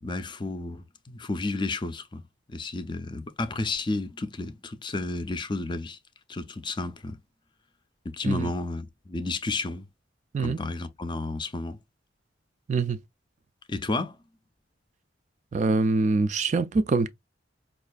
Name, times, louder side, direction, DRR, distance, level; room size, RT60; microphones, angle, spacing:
voice 1, 0.0-2.2 2.5-6.0 6.3-7.2 8.1-9.8 10.4-11.8 13.7-14.2, left 3 dB, 25° left, 0.5 m, -32 dB
voice 2, 12.7-13.0 15.5-17.1, right 3 dB, 40° right, 0.3 m, -24 dB
5.3 x 2.4 x 2.3 m
head